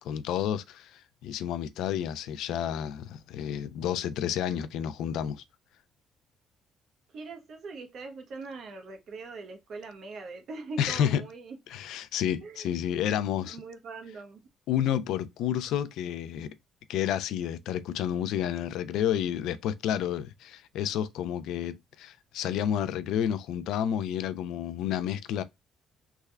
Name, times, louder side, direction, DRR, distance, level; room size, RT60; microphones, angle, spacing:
voice 1, 0.0-5.4 10.8-11.2 11.7-13.6 14.7-16.6 16.9-25.4, left 10 dB, 80° left, 0.3 m, -30 dB
voice 2, 7.1-11.6 12.4-12.7 13.5-14.5, right 3 dB, 55° right, 0.8 m, -42 dB
3.4 x 2.2 x 3.2 m
cardioid pair, 135°, 0 cm